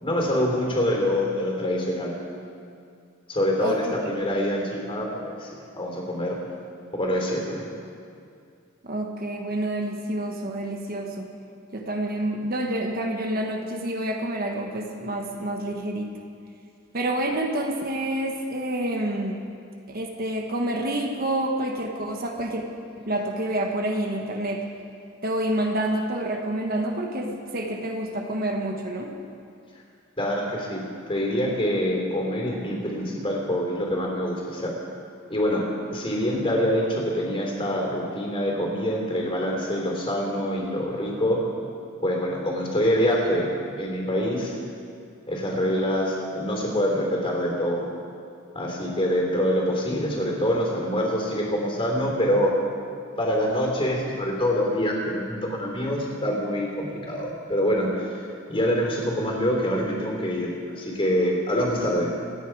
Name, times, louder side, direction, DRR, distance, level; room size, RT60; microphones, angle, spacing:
voice 1, 0.0-2.1 3.3-6.4 6.9-7.6 30.2-30.8 31.1-34.7 35.3-35.6 35.9-41.4 42.0-43.5 43.8-44.6 45.3-47.9 48.5-52.5 53.2-58.1 58.5-62.1, equal, 25° left, -1 dB, 3.5 m, -25 dB
voice 2, 8.8-11.3 11.7-16.1 16.9-19.4 19.9-22.6 23.0-24.6 25.2-29.1, right 1 dB, 45° right, 2 dB, 1.3 m, -28 dB
27.0 x 9.9 x 4.7 m, 2.4 s
head